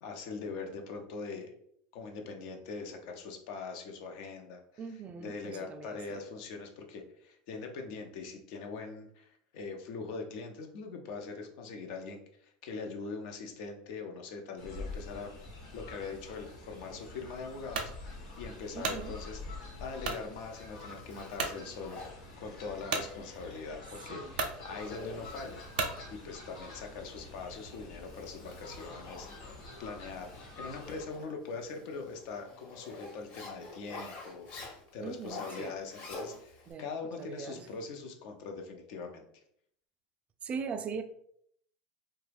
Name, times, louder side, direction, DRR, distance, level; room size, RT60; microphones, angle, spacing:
voice 1, 0.0-1.5 1.9-4.6 5.2-15.3 15.7-19.4 19.8-25.6 26.1-39.2, left 4 dB, 65° left, 4 dB, 0.6 m, -42 dB
voice 2, 4.8-6.2 18.7-19.2 24.1-24.3 35.0-35.7 36.7-37.8 40.4-41.0, right 5 dB, 30° right, 9 dB, 0.3 m, -41 dB
Fowl, 14.6-31.0, left 2 dB, 80° left, 1.2 m, -47 dB
sound 1, 17.7-18.0 18.5-19.0 20.0-20.3 20.8-20.9 21.4-21.6 22.9-23.1 23.9-24.0 24.3-24.6 25.7-26.0, right 4 dB, 90° right, 0.5 m, -33 dB
Zipper (clothing), 20.5-36.7, left 3 dB, 45° left, 1.1 m, -49 dB
2.9 x 2.2 x 3.3 m, 0.67 s
supercardioid pair, 120°, 4 cm